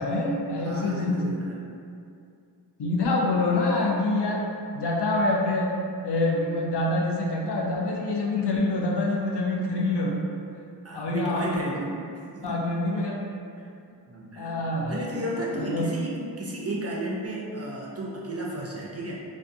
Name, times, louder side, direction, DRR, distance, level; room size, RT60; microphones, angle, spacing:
voice 1, 0.0-1.2 2.8-4.5 4.7-10.2 10.9-11.6 12.4-13.3 14.4-15.2 15.6-15.9, left 2 dB, 70° left, -2 dB, 0.5 m, -26 dB
voice 2, 0.6-1.6 10.8-11.9 12.3-12.6 12.9-13.2 13.6-13.7 14.1-14.6 14.9-19.2, right 1 dB, 40° right, -3 dB, 0.4 m, -33 dB
2.5 x 2.2 x 2.5 m, 2.5 s
wide cardioid pair, 70°, 42 cm